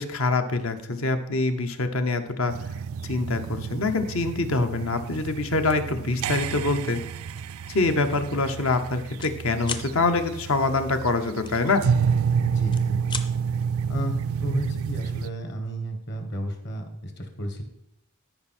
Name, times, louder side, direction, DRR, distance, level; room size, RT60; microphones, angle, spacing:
voice 1, 0.0-2.5 3.0-7.0 7.7-11.8, left 3 dB, 65° left, 8 dB, 0.9 m, -25 dB
sound 1, 2.5-15.3, right 6 dB, 70° right, 0.3 m, -29 dB
sound 2, 7.3-7.5 8.0-8.2 8.4-9.3 9.6-9.9 11.5-12.2 12.6-13.3, left 4 dB, 20° left, 0.5 m, -35 dB
voice 2, 12.4-13.0 13.9-17.6, right 1 dB, 50° left, 5 dB, 1.6 m, -32 dB
13.0 x 5.7 x 4.4 m, 0.82 s
head